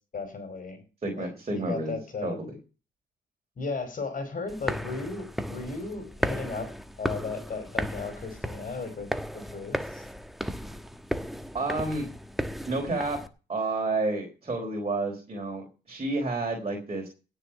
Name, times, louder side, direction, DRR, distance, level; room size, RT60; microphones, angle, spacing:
voice 1, 0.1-0.8 1.2-2.4 3.6-6.7 7.0-9.1 9.3-10.0, left 4 dB, 45° left, 8 dB, 5.0 m, -35 dB
voice 2, 1.0-2.0 2.2-2.6 11.5-12.1 12.7-13.2 13.5-17.1, right 2 dB, 30° right, 1 dB, 3.9 m, -30 dB
sound 1, 4.5-13.3, equal, ahead, 1.3 m, -35 dB
16.5 x 6.9 x 5.8 m, 0.34 s
cardioid pair, 90°, 20 cm